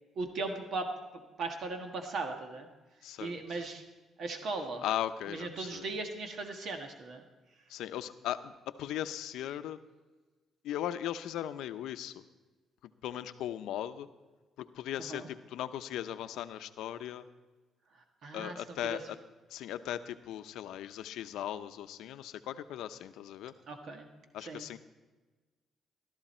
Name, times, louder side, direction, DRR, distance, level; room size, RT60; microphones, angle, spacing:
voice 1, 0.1-0.9 1.4-2.7 3.2-3.8 4.2-4.8 5.3-7.2 15.0-15.3 17.9-19.0 23.7-24.1 24.4-24.6, right 3 dB, 65° right, 5 dB, 1.5 m, -38 dB
voice 2, 3.0-3.4 4.8-5.9 7.7-9.8 10.6-12.2 13.0-14.1 14.6-17.2 18.3-19.2 19.5-23.5 24.3-24.8, left 11 dB, 85° left, 11 dB, 0.6 m, -38 dB
15.0 x 13.0 x 4.3 m, 1.2 s
cardioid pair, 90°, 0 cm